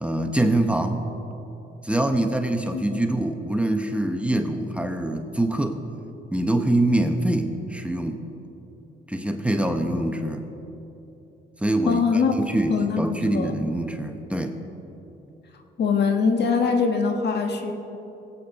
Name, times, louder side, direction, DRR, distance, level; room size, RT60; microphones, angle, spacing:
voice 1, 0.0-1.0 1.8-5.8 6.3-8.3 9.1-10.4 11.6-12.0 12.4-14.6, right 1 dB, 5° right, 5 dB, 1.0 m, -24 dB
voice 2, 11.8-12.3 12.7-13.0 13.3-13.5 15.8-17.7, left 5 dB, 60° left, 4 dB, 1.5 m, -22 dB
22.5 x 8.7 x 4.1 m, 3.0 s
cardioid pair, 90°, 20 cm